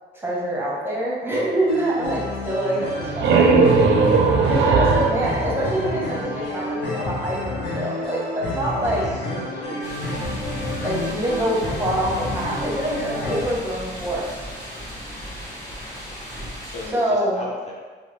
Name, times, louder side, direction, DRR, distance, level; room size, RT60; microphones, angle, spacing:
voice 1, 0.1-3.8 4.4-9.0 10.8-14.3 16.9-17.4, right 1 dB, 10° right, -6 dB, 0.8 m, -25 dB
sound 1, 1.7-13.5, left 1 dB, 65° left, 0.8 m, -30 dB
sound 2, 2.8-6.5, right 4 dB, 65° right, 0.4 m, -19 dB
voice 2, 9.3-10.1 16.6-17.7, left 2 dB, 35° left, -4 dB, 0.5 m, -36 dB
sound 3, 9.8-16.9, equal, 15° left, 1.1 m, -36 dB
2.9 x 2.1 x 3.1 m, 1.4 s
cardioid pair, 90°, 20 cm